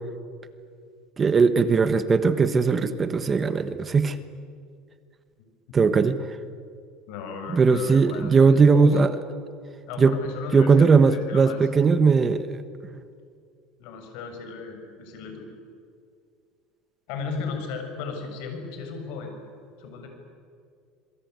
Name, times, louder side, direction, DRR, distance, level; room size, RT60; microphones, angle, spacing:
voice 1, 1.2-4.2 5.7-6.2 7.5-9.1 10.0-10.1 10.5-12.6, right 5 dB, 20° right, 11 dB, 1.2 m, -19 dB
voice 2, 7.1-9.0 9.9-11.6 13.8-15.5 17.1-19.3 19.8-20.1, left 4 dB, 70° left, 5 dB, 7.0 m, -35 dB
26.0 x 23.0 x 9.5 m, 2.3 s
supercardioid pair, 135°, 0 cm